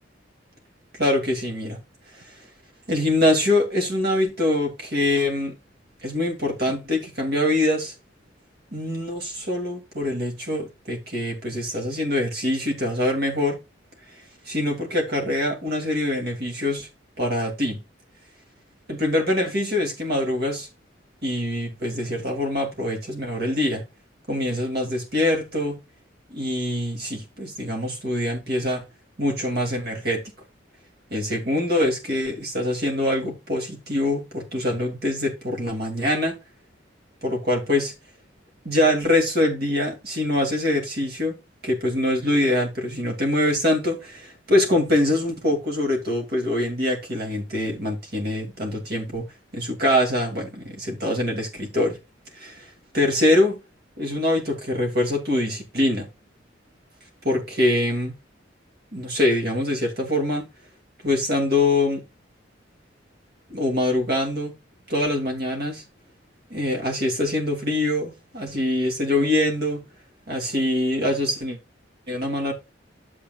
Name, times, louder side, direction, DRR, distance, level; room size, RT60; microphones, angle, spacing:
voice 1, 1.0-1.8 2.9-5.6 6.0-7.9 8.7-13.6 14.5-16.9 17.2-17.8 18.9-20.7 21.2-23.8 24.3-25.8 26.3-28.8 29.2-30.2 31.1-36.4 37.2-37.9 38.6-41.4 41.6-49.2 49.5-52.0 52.3-52.7 52.9-53.6 54.0-56.1 57.2-58.1 58.9-60.5 61.0-62.0 63.5-64.5 64.9-65.8 66.5-69.8 70.3-71.6 72.1-72.5, left 1 dB, 60° right, 2.6 m, -24 dB
10.5 x 7.5 x 2.4 m
head